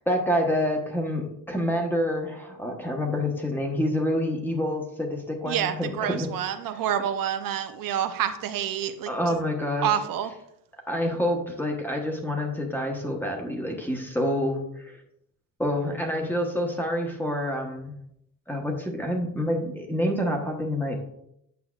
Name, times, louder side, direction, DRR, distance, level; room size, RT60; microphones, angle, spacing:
voice 1, 0.0-6.3 9.1-9.9 10.9-15.0 15.6-17.9 18.5-21.0, left 1 dB, 5° left, 1 dB, 1.0 m, -27 dB
voice 2, 5.5-9.4 9.8-10.3, right 9 dB, 80° right, 8 dB, 0.6 m, -28 dB
8.2 x 6.2 x 2.4 m, 0.75 s
cardioid pair, 145°, 34 cm